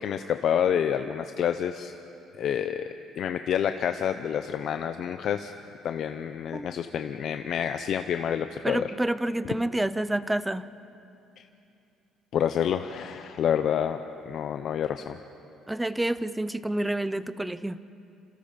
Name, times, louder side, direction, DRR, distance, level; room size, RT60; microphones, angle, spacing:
voice 1, 0.0-1.9 2.4-2.9 3.2-5.5 5.8-9.0 11.4-11.5 12.3-15.2, left 9 dB, 45° left, 8 dB, 0.7 m, -28 dB
voice 2, 8.6-10.7 15.7-17.8, right 1 dB, 5° right, 15 dB, 0.5 m, -28 dB
28.5 x 26.5 x 5.2 m, 2.7 s
cardioid pair, 175°, 0 cm